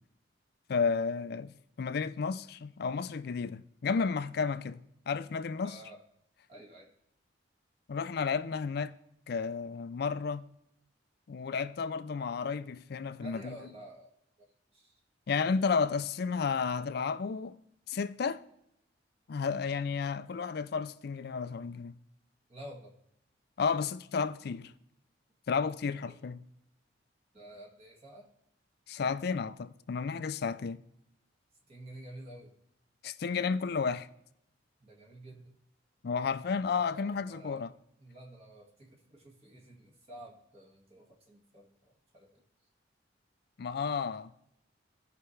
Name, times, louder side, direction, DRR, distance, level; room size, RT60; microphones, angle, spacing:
voice 1, 0.7-5.8 7.9-8.9 9.3-10.5 11.3-13.6 15.3-17.6 17.9-18.4 19.3-22.0 23.6-24.7 25.5-26.4 28.9-30.8 33.0-34.1 36.0-37.7 43.6-44.3, left 5 dB, 55° left, 0.4 m, -32 dB
voice 2, 5.6-6.0 6.5-6.9 13.2-14.1 14.7-15.0 22.5-22.9 26.1-26.2 27.3-28.3 31.7-32.5 34.8-35.6 36.7-37.7 38.0-42.4, right 1 dB, 35° right, 1.8 m, -50 dB
15.5 x 5.6 x 3.3 m
head